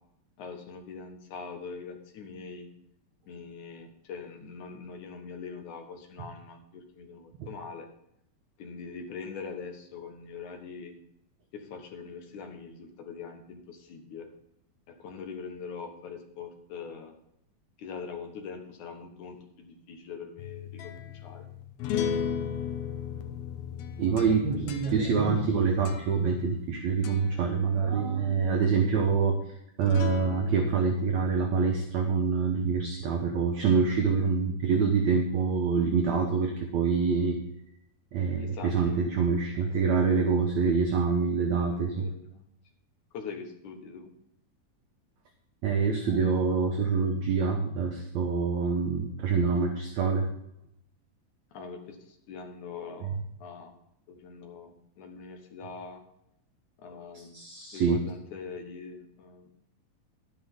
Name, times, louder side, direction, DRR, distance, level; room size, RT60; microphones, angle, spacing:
voice 1, 0.4-2.7 3.3-7.9 8.6-10.9 11.5-14.3 14.9-17.1 17.8-21.5 38.4-39.1 39.6-40.0 41.6-42.5 43.1-44.1 51.5-53.7 54.1-56.0 56.8-57.4 57.7-59.5, left 5 dB, 60° left, 4 dB, 2.5 m, -43 dB
sound 1, 20.4-26.7 27.0-27.4 29.8-30.8, left 8 dB, 80° left, 2.7 m, -36 dB
voice 2, 24.0-29.4 29.8-37.4 38.1-42.1 45.6-50.3 53.0-53.1 57.3-58.0, right 5 dB, 65° right, 4 dB, 1.9 m, -26 dB
12.0 x 10.0 x 3.7 m, 0.76 s
omnidirectional pair, 4.4 m